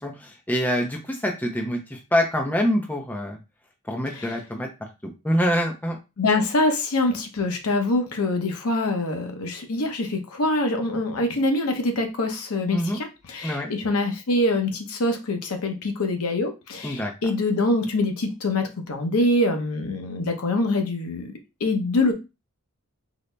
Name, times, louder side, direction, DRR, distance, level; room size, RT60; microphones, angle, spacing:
voice 1, 0.0-3.4 3.9-4.7 5.2-6.0 12.7-13.0 13.4-13.7 16.8-17.1, equal, 10° left, 2 dB, 0.4 m, -25 dB
voice 2, 6.2-21.3 21.6-22.1, left 2 dB, 75° left, 5 dB, 0.7 m, -24 dB
3.9 x 2.0 x 3.2 m, 0.27 s
head